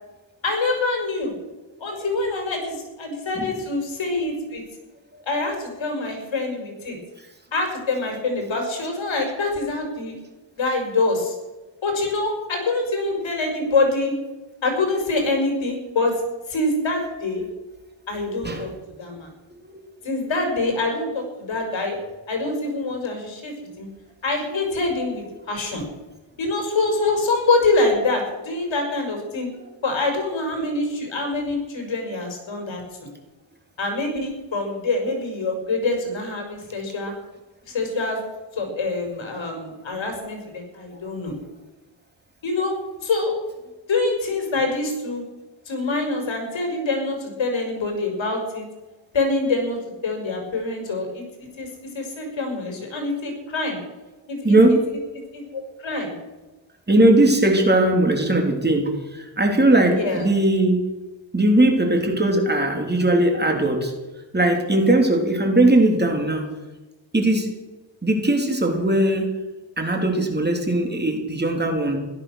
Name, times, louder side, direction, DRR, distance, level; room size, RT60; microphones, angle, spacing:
voice 1, 0.4-1.3 1.8-4.6 5.2-7.0 7.5-10.2 10.6-11.4 11.8-14.1 14.6-16.1 16.5-17.4 18.1-18.7 19.0-19.3 20.0-22.0 22.3-23.9 24.2-25.8 26.4-29.5 29.8-33.1 33.8-37.1 37.7-38.2 38.5-41.4 42.4-42.7 43.0-43.4 43.9-45.2 45.7-48.6 49.1-49.8 50.0-53.8 54.3-54.6 55.3-56.1 60.0-60.3, left 3 dB, 75° left, 2 dB, 5.5 m, -25 dB
voice 2, 18.3-18.7 19.6-19.8 24.5-24.6 29.9-30.0 40.9-41.0 54.4-54.8 56.9-60.8 61.3-63.9 64.3-66.5 67.1-67.5 68.0-69.3 69.8-72.0, right 1 dB, 20° right, 2 dB, 3.4 m, -19 dB
16.5 x 12.5 x 6.5 m, 1.1 s
wide cardioid pair, 100°, 46 cm